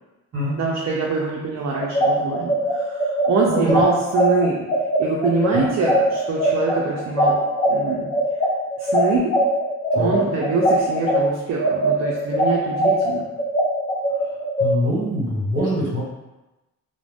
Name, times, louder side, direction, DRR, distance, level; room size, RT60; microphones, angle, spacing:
voice 1, 0.6-4.6 5.0-8.1 8.8-9.4 9.9-13.3, right 4 dB, 55° right, -2 dB, 0.4 m, -24 dB
sound 1, 1.8-11.2 11.6-14.7, equal, 20° left, 0.5 m, -20 dB
voice 2, 3.5-3.8 5.5-5.7 9.9-10.1 14.6-16.0, left 1 dB, 40° right, -7 dB, 1.3 m, -23 dB
2.4 x 2.0 x 3.3 m, 1.0 s
wide cardioid pair, 150°, 32 cm